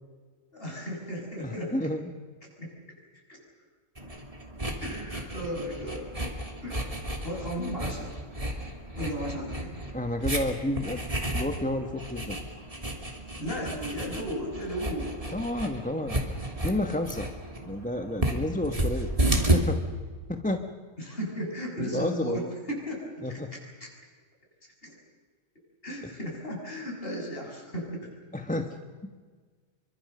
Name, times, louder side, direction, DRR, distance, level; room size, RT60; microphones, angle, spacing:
voice 1, 0.5-1.7 2.6-2.7 3.3-3.4 4.8-6.1 6.6-6.8 7.2-8.2 8.9-9.8 13.4-15.2 21.0-22.4 22.7-23.4 23.8-23.9 24.8-25.0 25.8-28.1, equal, 40° left, 0 dB, 6.6 m, -35 dB
voice 2, 1.4-2.1 9.9-11.0 11.3-12.4 15.3-16.2 16.6-17.3 17.7-19.1 19.5-19.8 20.3-20.6 21.8-22.5 23.2-23.5 26.0-26.1 28.3-28.7, left 1 dB, 5° left, 5 dB, 1.1 m, -30 dB
sound 1, 4.0-19.6, right 1 dB, 25° right, 2.8 m, -32 dB
26.0 x 24.0 x 6.8 m, 1.5 s
omnidirectional pair, 1.4 m